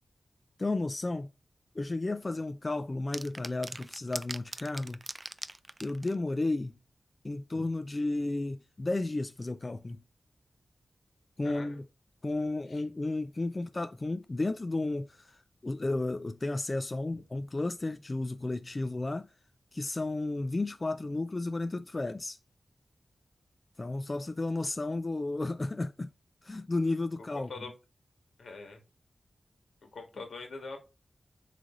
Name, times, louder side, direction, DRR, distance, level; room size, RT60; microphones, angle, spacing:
voice 1, 0.6-1.3 1.7-5.0 5.8-6.8 7.2-10.0 11.4-11.8 12.2-19.3 19.7-22.4 23.8-26.1 26.4-27.5, left 2 dB, 35° left, 0.4 m, -33 dB
sound 1, 3.1-6.2, right 2 dB, 30° right, 0.4 m, -40 dB
voice 2, 11.4-11.8 12.7-12.8 24.2-24.3 27.2-27.7 28.4-28.8 29.8-30.8, left 3 dB, 85° left, 1.9 m, -44 dB
7.7 x 3.4 x 3.8 m
wide cardioid pair, 90°, 0 cm